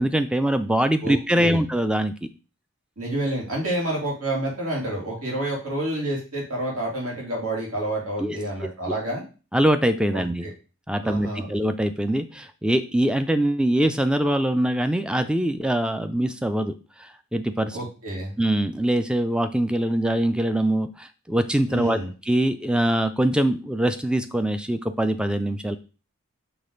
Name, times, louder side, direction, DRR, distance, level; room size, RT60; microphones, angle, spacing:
voice 1, 0.0-2.1 8.2-8.4 9.5-10.5 10.9-17.8 18.4-22.0 22.3-25.8, right 1 dB, 5° right, 10 dB, 0.3 m, -23 dB
voice 2, 1.0-1.6 3.0-9.2 10.1-10.2 11.0-11.5 17.7-18.3 21.7-22.1, right 1 dB, 80° right, -2 dB, 2.7 m, -29 dB
6.0 x 3.2 x 5.1 m, 0.34 s
head